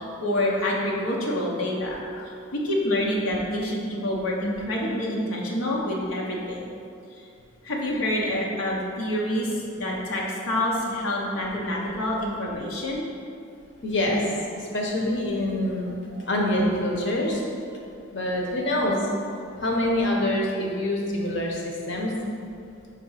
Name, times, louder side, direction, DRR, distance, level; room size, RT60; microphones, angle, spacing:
voice 1, 0.0-2.0 2.2-6.6 7.1-7.3 7.6-13.1 16.0-16.3, left 1 dB, 85° left, -3 dB, 1.0 m, -27 dB
voice 2, 13.8-14.3 14.5-16.0 16.3-17.4 18.1-19.1 19.6-22.1, left 1 dB, 60° left, -1 dB, 1.1 m, -25 dB
5.8 x 4.2 x 5.7 m, 2.5 s
head